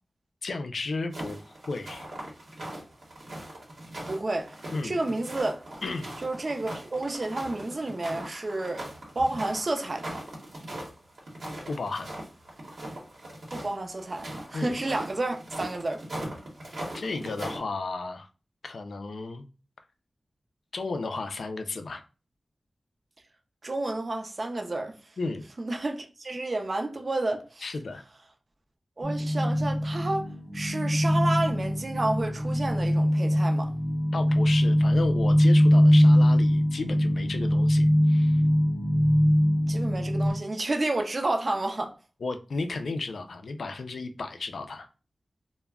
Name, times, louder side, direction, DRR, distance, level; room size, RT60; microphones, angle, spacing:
voice 1, 0.4-1.4 1.7-2.1 4.7-5.0 5.8-6.1 11.7-12.1 14.5-14.8 16.9-18.3 18.6-19.5 20.7-22.0 25.2-25.4 27.6-28.0 34.1-38.4 42.2-44.9, left 3 dB, 80° left, 0.3 m, -33 dB
sound 1, 1.1-17.6, right 1 dB, 80° right, 0.9 m, -40 dB
voice 2, 4.1-5.8 6.2-8.9 9.1-10.3 13.5-16.0 23.6-24.9 25.6-27.7 29.0-30.3 30.5-33.7 39.7-41.9, right 2 dB, 55° right, 0.5 m, -30 dB
sound 2, 29.0-40.3, equal, 20° left, 0.6 m, -22 dB
2.2 x 2.0 x 3.4 m
cardioid pair, 50°, 0 cm